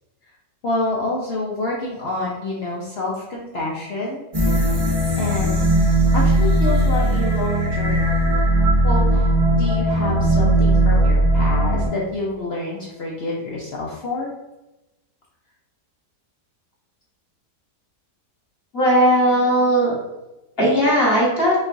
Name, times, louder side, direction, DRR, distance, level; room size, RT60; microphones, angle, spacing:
voice 1, 0.6-4.2 5.2-5.7 6.0-8.0 8.8-9.3 9.6-14.3, left 2 dB, 70° left, -3 dB, 0.6 m, -27 dB
sound 1, 4.3-11.9, right 1 dB, 30° right, 0.6 m, -18 dB
voice 2, 18.7-19.9 20.6-21.5, equal, 35° left, -7 dB, 1.5 m, -17 dB
5.7 x 2.4 x 2.6 m, 1.0 s
omnidirectional pair, 1.8 m